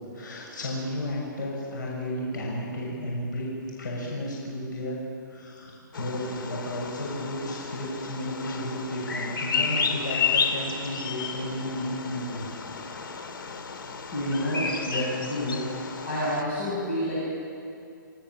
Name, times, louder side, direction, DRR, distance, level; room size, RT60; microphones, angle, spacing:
voice 1, 0.1-3.5 3.8-5.0 5.3-12.5, left 1 dB, 60° left, -3 dB, 7.0 m, -33 dB
Bird vocalization bird call bird song, 5.9-16.4, left 5 dB, 80° left, 2.3 m, -32 dB
voice 2, 14.1-15.6 16.0-17.2, left 1 dB, 40° left, -7 dB, 7.7 m, -28 dB
28.5 x 17.5 x 7.7 m, 2.5 s
hypercardioid pair, 175°, 11 cm